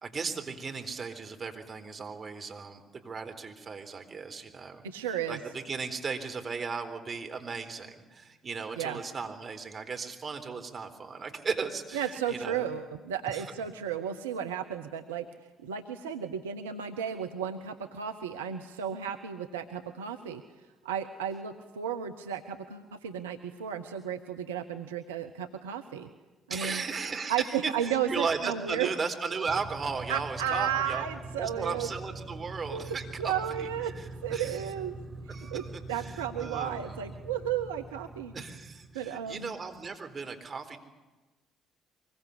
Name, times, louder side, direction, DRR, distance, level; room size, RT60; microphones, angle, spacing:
voice 1, 0.0-4.8 5.3-12.7 13.3-13.5 26.5-31.1 31.4-34.6 35.3-37.0 38.3-40.8, right 5 dB, 40° right, 5 dB, 4.0 m, -36 dB
voice 2, 4.8-5.4 8.8-9.0 11.9-15.3 15.6-20.4 20.8-26.1 26.5-26.8 27.3-28.9 30.1-31.9 32.7-32.9 33.2-33.9 34.2-35.0 35.5-35.6 35.9-38.3 38.9-39.5, right 9 dB, 85° right, 7 dB, 1.0 m, -33 dB
sound 1, 29.5-39.3, right 2 dB, 20° right, 5.2 m, -44 dB
24.0 x 22.5 x 8.5 m, 1.1 s
hypercardioid pair, 50°, 0 cm